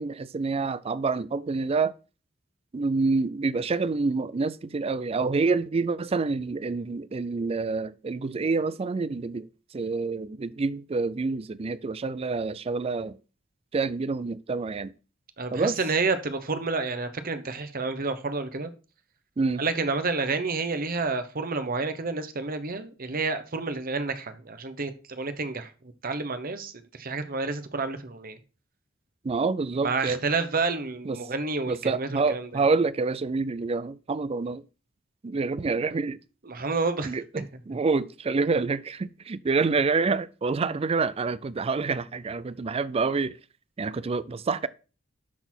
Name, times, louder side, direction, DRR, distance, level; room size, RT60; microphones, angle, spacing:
voice 1, 0.0-1.9 2.7-9.5 9.7-13.2 13.7-14.9 15.5-15.8 19.4-19.6 29.2-30.2 31.1-31.2 31.7-34.6 35.2-36.2 37.0-43.4 43.8-44.7, right 4 dB, 30° right, 0.4 m, -27 dB
voice 2, 15.4-18.7 19.6-25.7 26.0-28.4 29.8-32.6 36.5-37.2 37.7-37.8, right 3 dB, 45° right, 1.0 m, -29 dB
12.0 x 4.1 x 4.4 m
head